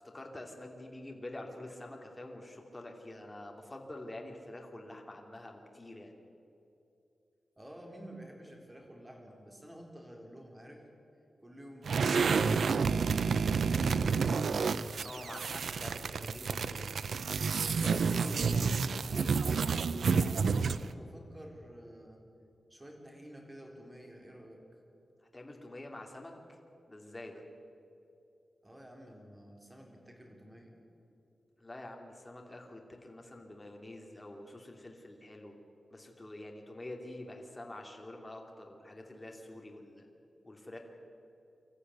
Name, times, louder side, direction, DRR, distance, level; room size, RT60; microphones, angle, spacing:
voice 1, 0.1-6.1 15.0-16.9 17.8-19.3 25.3-26.6 26.9-27.4 31.6-35.6 35.9-40.1 40.4-40.8, left 1 dB, 20° left, 2 dB, 2.7 m, -46 dB
voice 2, 7.6-10.8 11.4-14.1 20.5-22.2 22.7-24.6 28.6-30.8, equal, 15° right, 1 dB, 3.9 m, -51 dB
sound 1, 11.8-20.9, right 5 dB, 80° right, 0.6 m, -30 dB
25.0 x 14.0 x 9.5 m, 2.8 s
wide cardioid pair, 120°, 0 cm